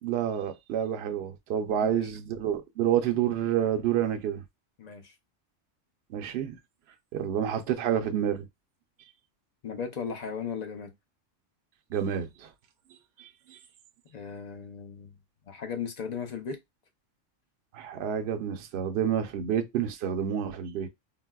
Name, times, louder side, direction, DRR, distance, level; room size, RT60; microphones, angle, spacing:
voice 1, 0.0-4.4 6.1-6.5 7.1-8.5 11.9-12.5 13.2-13.6 17.7-20.9, right 9 dB, 65° right, 0.8 m, -29 dB
voice 2, 4.8-5.1 7.2-7.3 9.6-10.9 14.1-15.2 15.5-16.6, left 6 dB, 45° left, 0.5 m, -36 dB
3.9 x 2.1 x 2.2 m
omnidirectional pair, 1.3 m